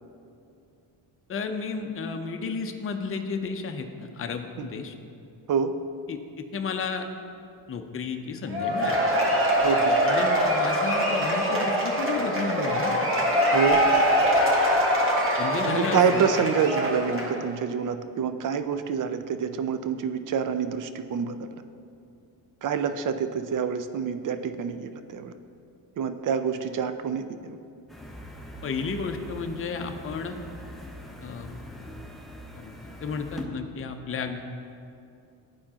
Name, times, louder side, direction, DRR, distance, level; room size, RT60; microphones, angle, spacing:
voice 1, 1.3-4.9 6.1-7.1 7.7-9.0 10.0-13.0 15.4-16.3 28.6-30.4 31.2-31.5 32.5-32.7 33.0-34.5, left 5 dB, 30° left, 5 dB, 0.6 m, -32 dB
Cheering / Applause / Crowd, 8.5-17.4, equal, 30° right, 1.4 m, -23 dB
voice 2, 9.6-10.0 13.4-13.8 15.6-21.5 22.6-25.3 26.0-27.6, right 6 dB, 45° right, 10 dB, 0.5 m, -27 dB
sound 1, 27.9-33.5, left 1 dB, ahead, 0.7 m, -42 dB
11.5 x 4.3 x 2.9 m, 2.5 s
cardioid pair, 80°, 45 cm